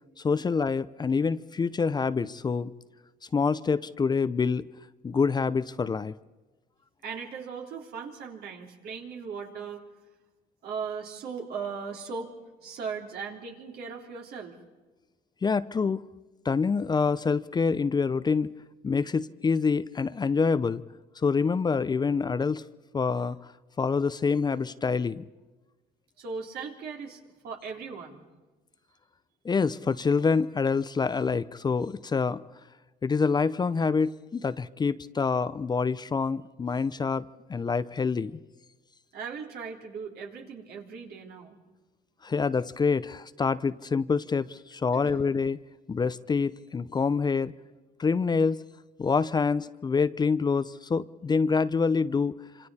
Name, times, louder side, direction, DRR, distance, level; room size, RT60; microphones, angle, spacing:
voice 1, 0.2-2.7 3.3-4.7 5.0-6.1 15.4-16.0 16.4-18.5 18.8-20.8 21.2-22.6 22.9-23.4 23.8-25.2 29.4-32.4 33.0-38.4 42.2-45.6 45.9-47.5 48.0-48.6 49.0-52.7, left 5 dB, 25° left, 14 dB, 0.6 m, -26 dB
voice 2, 7.0-9.9 10.6-12.3 12.6-14.5 26.2-28.2 39.1-41.6 45.0-45.3, right 5 dB, 70° right, 1 dB, 3.5 m, -38 dB
27.5 x 26.0 x 4.3 m, 1.2 s
cardioid pair, 110°, 17 cm